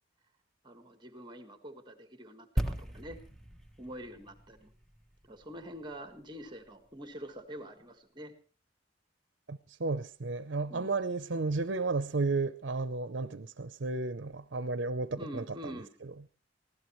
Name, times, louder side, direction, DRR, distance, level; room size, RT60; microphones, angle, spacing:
voice 1, 0.6-3.2 3.8-4.7 5.3-8.3 10.7-10.9 15.2-15.9, equal, 25° right, 1.7 m, -46 dB
sound 1, 2.6-6.2 6.5-6.7, right 1 dB, ahead, 1.3 m, -38 dB
voice 2, 9.5-15.4, right 3 dB, 65° right, 0.7 m, -33 dB
24.5 x 16.5 x 3.2 m
head